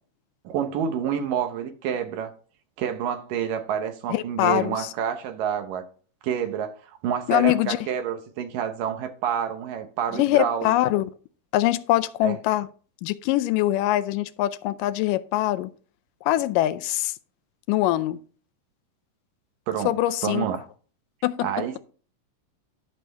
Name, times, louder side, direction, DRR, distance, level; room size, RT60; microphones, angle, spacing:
voice 1, 0.4-2.3 2.8-5.8 6.2-6.7 7.0-11.0 12.2-12.4 19.7-20.0 20.2-20.6 21.4-21.8, right 8 dB, 90° right, 2.7 m, -28 dB
voice 2, 4.1-4.9 7.3-7.8 10.1-11.1 11.5-12.7 13.0-15.7 16.2-17.1 17.7-18.2 19.9-20.5 21.2-21.6, left 15 dB, 90° left, 2.2 m, -23 dB
11.5 x 6.3 x 3.4 m
omnidirectional pair, 3.7 m